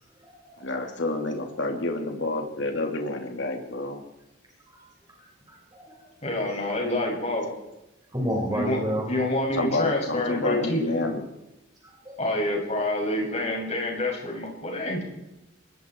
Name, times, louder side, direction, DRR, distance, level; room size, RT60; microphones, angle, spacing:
voice 1, 0.6-4.0 9.5-11.2, left 2 dB, 55° left, 3 dB, 2.9 m, -29 dB
voice 2, 5.5-6.0 8.1-9.1 11.8-12.2, equal, 20° right, -2 dB, 5.4 m, -30 dB
voice 3, 6.2-7.5 8.5-11.0 12.2-15.0, left 1 dB, 30° left, -1 dB, 7.4 m, -27 dB
25.0 x 22.5 x 4.7 m, 0.94 s
head